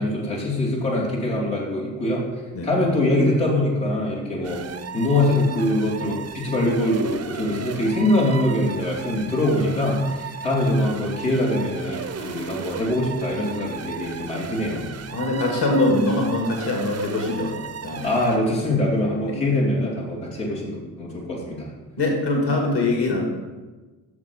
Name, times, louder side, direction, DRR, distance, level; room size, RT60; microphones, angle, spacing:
voice 1, 0.0-2.2 2.6-4.7 4.9-14.9 18.0-21.7, left 1 dB, 90° left, -6 dB, 2.8 m, -23 dB
sound 1, 4.4-18.5, right 7 dB, 35° right, 0.6 m, -36 dB
voice 2, 15.1-17.5 17.8-18.1 19.3-19.4 22.0-23.2, left 2 dB, 60° left, 0 dB, 2.3 m, -22 dB
8.0 x 6.5 x 5.4 m, 1.3 s
hypercardioid pair, 45°, 47 cm